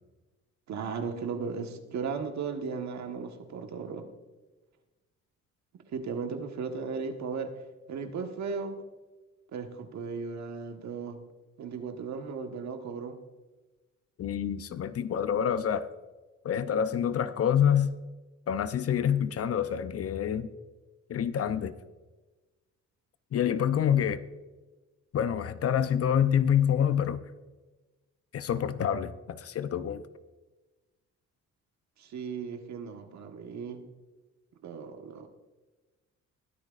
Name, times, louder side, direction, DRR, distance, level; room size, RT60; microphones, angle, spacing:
voice 1, 0.7-4.1 5.9-7.5 7.9-8.8 9.5-11.2 11.6-13.2 23.9-24.0 32.0-33.8 34.6-35.3, right 5 dB, 65° right, 5 dB, 1.4 m, -36 dB
voice 2, 14.2-15.9 16.4-17.9 18.5-20.5 21.1-21.7 23.3-24.2 25.1-27.2 28.3-30.0, left 9 dB, 50° left, 12 dB, 0.7 m, -27 dB
21.5 x 8.9 x 2.5 m, 1.2 s
cardioid pair, 90°, 30 cm